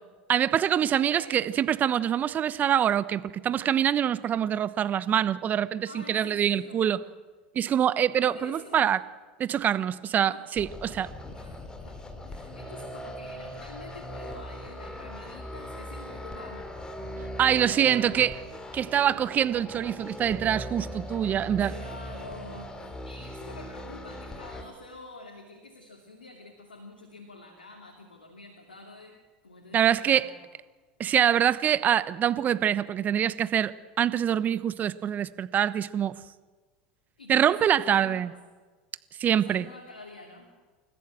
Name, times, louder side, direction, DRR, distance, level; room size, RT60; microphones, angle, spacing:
voice 1, 0.3-7.0 7.5-9.0 9.4-11.1 17.4-18.3 18.7-21.7 29.7-30.3 31.0-36.2 37.3-38.3 39.2-39.7, right 9 dB, 35° right, 16 dB, 1.0 m, -25 dB
voice 2, 0.9-1.5 5.9-7.0 8.1-8.9 10.3-10.5 11.3-16.7 17.5-18.3 21.6-29.2 29.4-30.5 37.2-38.4 39.3-40.6, left 2 dB, 90° left, 2 dB, 2.8 m, -47 dB
sound 1, 10.6-24.6, equal, 15° left, 3.0 m, -40 dB
29.0 x 14.0 x 7.7 m, 1.4 s
hypercardioid pair, 85°, 5 cm